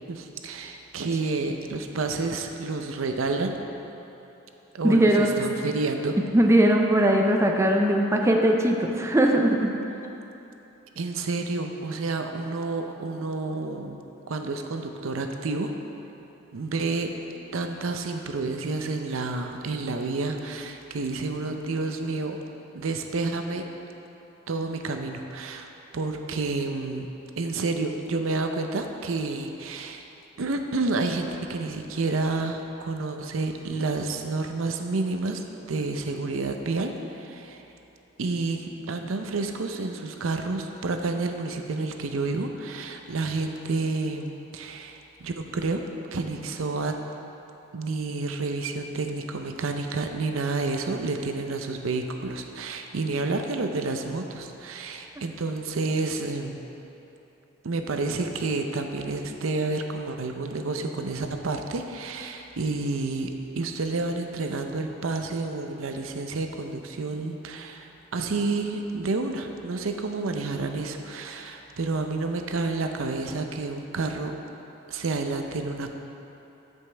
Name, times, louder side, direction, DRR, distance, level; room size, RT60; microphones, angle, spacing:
voice 1, 0.1-3.6 4.7-6.2 11.0-14.0 14.3-15.7 16.5-17.2 17.5-22.4 22.7-23.7 24.5-27.1 27.4-30.0 30.4-35.4 35.7-37.6 38.2-45.8 46.1-47.0 47.7-56.6 57.6-74.3 74.9-75.9, right 3 dB, 80° right, 5 dB, 0.6 m, -29 dB
voice 2, 4.8-5.3 6.3-9.7, right 1 dB, 15° right, 1 dB, 0.5 m, -20 dB
13.5 x 5.4 x 3.3 m, 3.0 s
head